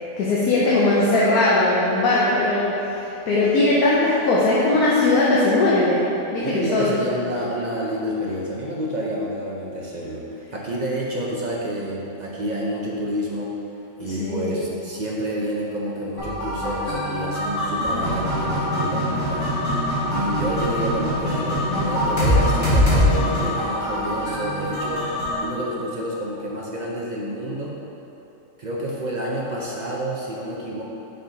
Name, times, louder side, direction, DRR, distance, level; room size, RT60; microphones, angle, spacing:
voice 1, 0.2-6.0 6.3-6.9 14.0-14.5, left 2 dB, 85° left, -6 dB, 1.3 m, -19 dB
voice 2, 6.4-13.5 14.0-19.6 20.1-25.1 25.4-27.8 28.6-30.8, equal, 55° right, -4 dB, 0.5 m, -29 dB
sound 1, 16.2-25.4, left 1 dB, 55° left, 2.0 m, -23 dB
5.6 x 5.4 x 3.9 m, 3.0 s
omnidirectional pair, 1.5 m